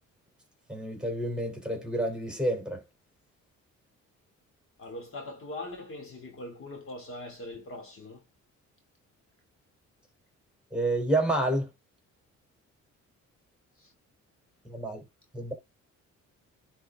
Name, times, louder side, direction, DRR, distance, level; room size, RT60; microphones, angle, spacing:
voice 1, 0.7-2.8 10.7-11.7 14.6-15.0 15.3-15.5, right 1 dB, 5° right, 3.3 m, -29 dB
voice 2, 4.8-8.2 13.8-13.9, left 2 dB, 45° left, 2.9 m, -41 dB
10.0 x 3.5 x 3.7 m
cardioid pair, 90°, 30 cm